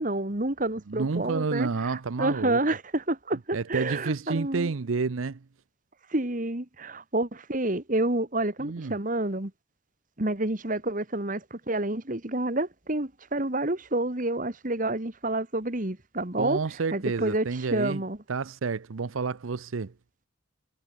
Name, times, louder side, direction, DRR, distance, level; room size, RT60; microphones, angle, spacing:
voice 1, 0.0-4.7 6.1-9.5 10.2-16.6 16.9-18.2, right 2 dB, 40° right, 2.0 m, -29 dB
voice 2, 0.9-2.6 3.5-5.4 8.6-9.0 16.4-18.0 18.3-19.9, right 4 dB, 90° right, 0.7 m, -30 dB
head